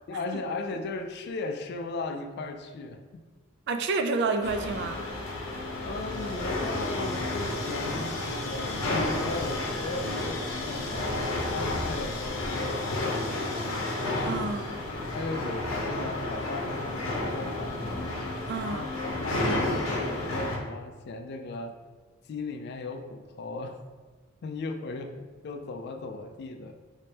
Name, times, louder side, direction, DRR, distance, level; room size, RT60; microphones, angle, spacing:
voice 1, 0.1-3.2 5.8-13.9 15.1-18.0 18.7-21.8 22.3-23.8 24.4-25.1 25.4-26.8, left 3 dB, 55° left, 6 dB, 0.3 m, -37 dB
voice 2, 3.7-5.1 14.2-14.8 18.5-18.9, right 3 dB, 55° right, 7 dB, 0.3 m, -29 dB
sound 1, 4.4-20.6, left 2 dB, 90° left, 0.7 m, -31 dB
3.4 x 3.1 x 2.8 m, 1.4 s
head